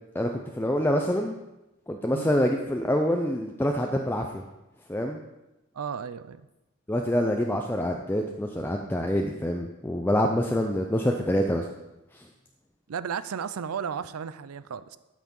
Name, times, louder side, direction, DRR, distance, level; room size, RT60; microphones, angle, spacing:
voice 1, 0.1-1.4 1.9-4.4 4.9-5.2 6.9-11.7 12.1-12.3, equal, 10° left, 3 dB, 0.5 m, -26 dB
voice 2, 5.7-6.5 12.9-15.0, right 7 dB, 90° right, 15 dB, 0.5 m, -34 dB
13.0 x 6.2 x 5.4 m, 0.97 s
head